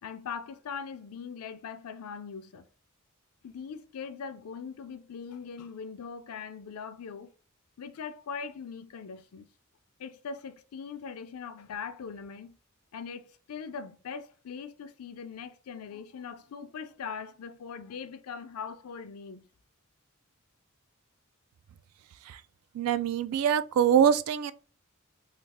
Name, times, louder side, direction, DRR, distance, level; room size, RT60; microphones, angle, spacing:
voice 1, 0.0-2.7 3.4-7.3 7.8-9.5 10.0-12.6 12.9-19.5, left 6 dB, 80° left, 0.4 m, -41 dB
voice 2, 22.7-24.5, right 8 dB, 85° right, 0.3 m, -24 dB
3.2 x 2.4 x 3.4 m
head